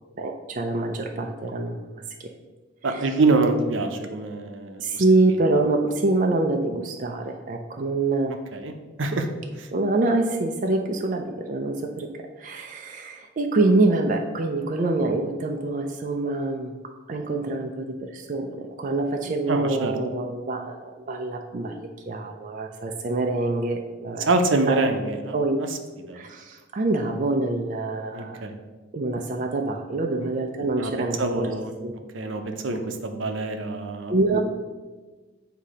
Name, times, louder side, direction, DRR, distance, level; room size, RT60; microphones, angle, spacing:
voice 1, 0.2-2.0 2.9-3.0 4.8-8.3 9.7-12.1 12.4-16.7 17.1-24.3 24.7-24.8 25.3-25.6 26.1-28.4 28.9-31.5 31.8-31.9 34.1-34.4, right 2 dB, 40° right, 3 dB, 0.4 m, -25 dB
voice 2, 2.8-5.0 8.5-8.7 9.0-9.3 9.6-9.7 19.5-19.9 24.2-25.7 26.1-26.2 28.1-28.5 30.8-30.9 31.2-31.7 32.1-34.4, right 3 dB, 80° right, 6 dB, 0.7 m, -25 dB
8.1 x 2.8 x 4.9 m, 1.3 s
head